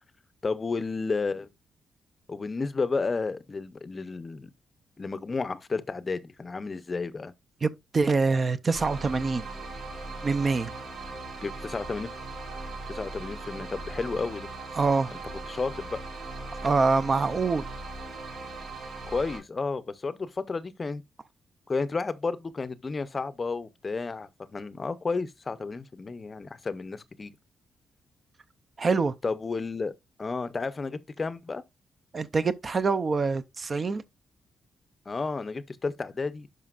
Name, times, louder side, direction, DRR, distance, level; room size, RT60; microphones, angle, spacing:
voice 1, 0.4-1.5 2.3-4.5 5.0-7.3 11.4-12.1 12.9-14.5 15.5-16.0 19.1-21.0 21.7-27.3 29.2-29.9 30.2-31.6 35.1-36.5, left 4 dB, 30° left, 0.6 m, -32 dB
voice 2, 7.6-9.4 10.2-10.7 14.8-15.1 16.6-17.6 28.8-29.1 32.1-34.0, right 4 dB, 35° right, 0.5 m, -25 dB
sound 1, 8.7-19.4, right 2 dB, 70° right, 5.0 m, -39 dB
11.0 x 5.2 x 2.4 m
cardioid pair, 130°, 0 cm